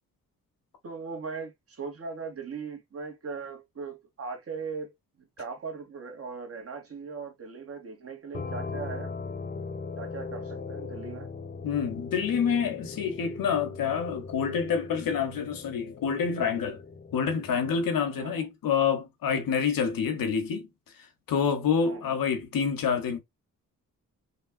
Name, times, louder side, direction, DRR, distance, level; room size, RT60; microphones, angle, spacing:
voice 1, 0.8-4.9 5.4-9.1 10.0-11.3 18.2-18.5 21.8-22.2, right 5 dB, 40° right, 1.5 m, -39 dB
sound 1, 8.3-17.9, left 4 dB, 25° left, 0.6 m, -39 dB
voice 2, 11.6-16.8 17.1-20.7 21.3-23.2, left 6 dB, 75° left, 1.2 m, -27 dB
5.4 x 2.4 x 2.3 m
cardioid pair, 75°, 34 cm